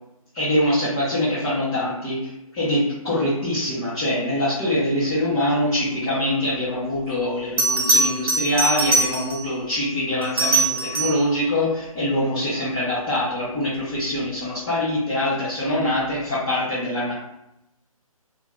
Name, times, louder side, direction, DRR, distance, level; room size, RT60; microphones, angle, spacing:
voice 1, 0.3-17.1, left 1 dB, 10° left, -13 dB, 0.4 m, -24 dB
Bell, 6.9-7.0 7.6-9.5 10.2-11.3 14.0-14.2, right 2 dB, 40° right, 0.8 m, -22 dB
2.6 x 2.3 x 3.0 m, 0.87 s
figure-of-eight pair, 140°, 19 cm